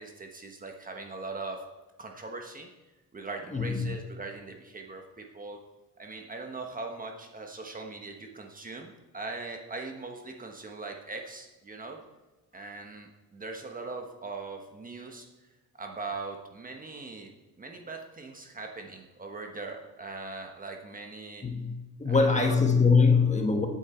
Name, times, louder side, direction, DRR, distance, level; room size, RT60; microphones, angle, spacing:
voice 1, 0.0-1.6 2.0-2.7 3.1-5.6 6.0-12.0 12.5-15.3 15.8-17.3 17.6-21.5 22.0-22.6, right 3 dB, 25° right, 3 dB, 1.3 m, -40 dB
voice 2, 3.5-3.8 21.4-21.7 22.0-23.7, left 4 dB, 20° left, 3 dB, 1.5 m, -22 dB
16.5 x 8.9 x 4.5 m, 1.1 s
cardioid pair, 145°, 34 cm